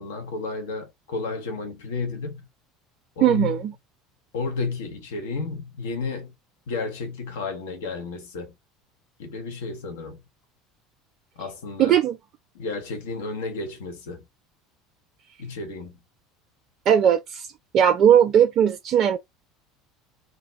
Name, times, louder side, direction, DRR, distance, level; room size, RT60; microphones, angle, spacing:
voice 1, 0.0-2.5 3.2-3.6 4.3-6.3 6.7-8.5 9.2-10.2 11.4-12.0 12.5-14.2 15.4-16.0, left 4 dB, 70° left, 0.7 m, -32 dB
voice 2, 3.2-3.7 11.8-12.2 16.9-17.5 17.7-19.2, right 9 dB, 45° right, 0.4 m, -18 dB
2.2 x 2.1 x 3.8 m
figure-of-eight pair, 70°, 0 cm